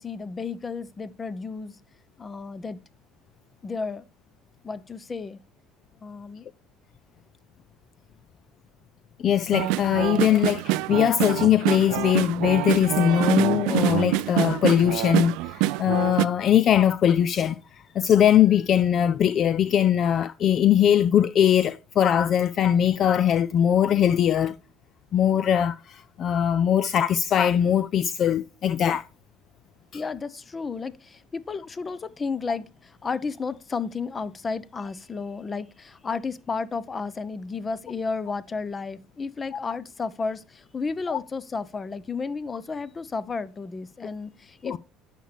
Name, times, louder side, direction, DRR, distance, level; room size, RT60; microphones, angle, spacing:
voice 1, 0.0-1.8 2.2-2.8 3.6-4.1 4.6-5.4 6.0-6.5 29.9-44.8, left 4 dB, 30° left, 0.8 m, -32 dB
voice 2, 9.2-24.5 25.1-29.1 29.9-30.0 41.1-41.2 44.7-44.8, left 9 dB, 50° left, 0.4 m, -21 dB
sound 1, 9.5-16.3, right 17 dB, 75° right, 0.4 m, -26 dB
10.0 x 6.7 x 3.3 m
supercardioid pair, 90°, 0 cm